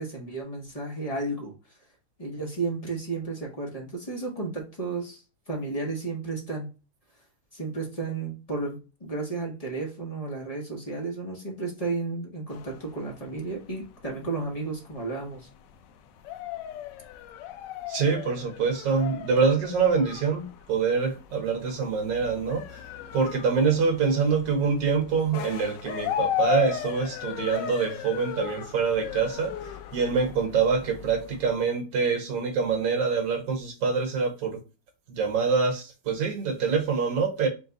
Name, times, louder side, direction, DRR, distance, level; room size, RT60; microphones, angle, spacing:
voice 1, 0.0-1.5 2.2-6.7 7.5-15.5, right 3 dB, 40° left, 0.5 m, -33 dB
sound 1, 12.5-31.6, left 12 dB, 80° left, 1.0 m, -36 dB
voice 2, 17.9-22.6 23.1-29.5 29.9-34.6 35.1-37.5, right 5 dB, 50° right, 1.4 m, -25 dB
4.4 x 2.3 x 3.9 m
omnidirectional pair, 2.4 m